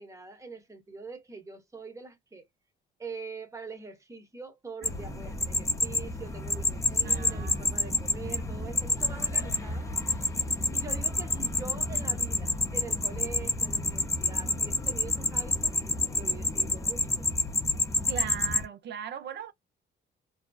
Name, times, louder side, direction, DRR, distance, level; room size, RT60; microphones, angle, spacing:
voice 1, 0.0-2.5 3.0-9.9 10.7-15.8 16.1-17.5, right 4 dB, 15° right, 0.9 m, -44 dB
sound 1, 4.8-18.6, left 3 dB, 15° left, 0.7 m, -29 dB
voice 2, 4.8-5.2 7.0-8.7 18.1-19.5, right 9 dB, 60° right, 0.6 m, -41 dB
2.6 x 2.2 x 2.2 m
cardioid pair, 90°, 20 cm